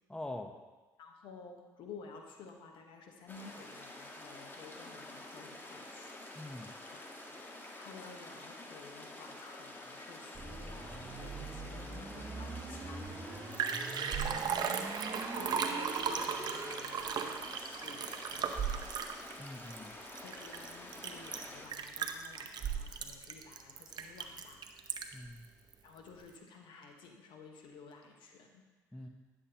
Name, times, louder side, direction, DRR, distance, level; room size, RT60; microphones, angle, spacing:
voice 1, 0.1-0.5 6.3-6.7 14.3-14.6 19.4-19.9 25.1-25.5 28.9-29.1, left 1 dB, 10° left, 5 dB, 0.8 m, -44 dB
voice 2, 1.0-6.1 6.9-7.4 7.8-14.0 14.3-14.9 15.3-18.9 20.0-24.6 25.8-28.6, left 4 dB, 70° left, 3 dB, 1.1 m, -53 dB
sound 1, 3.3-21.7, left 1 dB, 25° left, 1.4 m, -49 dB
sound 2, 10.3-16.8, right 3 dB, 35° right, 1.1 m, -44 dB
Liquid, 13.1-13.2 13.4-25.3 25.7-25.8, right 7 dB, 55° right, 0.7 m, -36 dB
9.9 x 7.4 x 2.9 m, 1.3 s
supercardioid pair, 60°, 9 cm